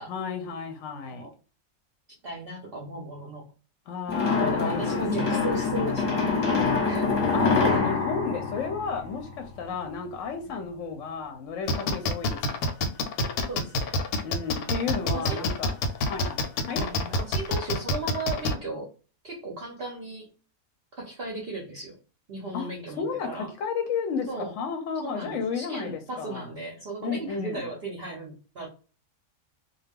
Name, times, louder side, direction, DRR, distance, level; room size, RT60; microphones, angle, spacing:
voice 1, 0.1-1.3 3.9-5.5 7.3-12.6 14.2-15.8 16.1-16.8 22.5-22.7 23.0-26.5 27.0-27.7, left 5 dB, 70° left, 0.8 m, -32 dB
voice 2, 2.2-3.5 4.4-7.0 9.7-9.8 10.5-10.6 13.5-14.0 15.0-15.5 16.8-18.9 19.2-20.3 21.0-22.0 22.3-23.5 24.3-24.5 25.0-28.7, right 2 dB, 60° right, 0.6 m, -36 dB
sound 1, 4.1-9.4, left 4 dB, 35° left, 0.8 m, -25 dB
sound 2, 11.7-18.5, left 2 dB, 90° left, 1.1 m, -26 dB
2.3 x 2.2 x 3.4 m
omnidirectional pair, 1.5 m